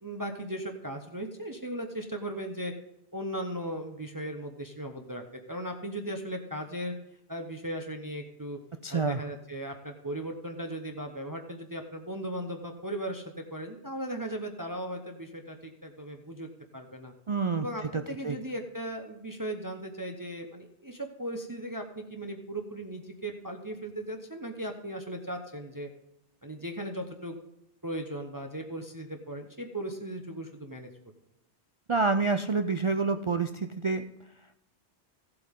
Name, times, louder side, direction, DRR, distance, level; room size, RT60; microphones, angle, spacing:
voice 1, 0.0-2.7 3.1-6.9 7.3-8.6 8.9-17.1 17.6-25.9 26.4-27.4 27.8-30.9, right 1 dB, 20° right, 4 dB, 0.9 m, -37 dB
voice 2, 8.8-9.2 17.3-17.7 17.9-18.4 31.9-34.1, right 4 dB, 55° right, 8 dB, 0.3 m, -28 dB
15.5 x 7.8 x 3.6 m, 0.86 s
omnidirectional pair, 1.1 m